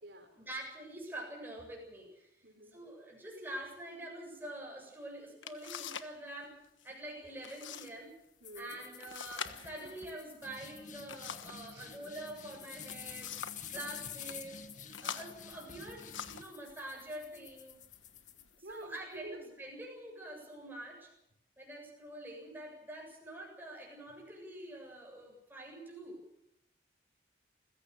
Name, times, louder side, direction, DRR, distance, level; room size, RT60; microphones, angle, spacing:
voice 1, 0.4-2.3 2.7-6.5 6.8-8.1 8.5-13.3 13.6-14.6 15.0-17.8 18.7-21.1 21.6-26.2, right 1 dB, 10° right, -1 dB, 7.6 m, -46 dB
voice 2, 2.4-2.8 8.4-8.8 11.6-11.9 13.7-13.8 18.6-19.5, right 1 dB, 60° right, 3 dB, 4.9 m, -49 dB
sound 1, 4.9-5.0 5.4-6.2 6.4-6.9 7.4-7.9 8.2-8.3 9.0-11.7 12.6-13.7 14.1-14.4 14.9-16.6 17.3-17.5 18.0-18.5, left 7 dB, 85° left, 1.3 m, -45 dB
sound 2, 8.4-19.0, left 8 dB, 40° left, 1.9 m, -49 dB
28.5 x 16.5 x 6.8 m, 0.81 s
head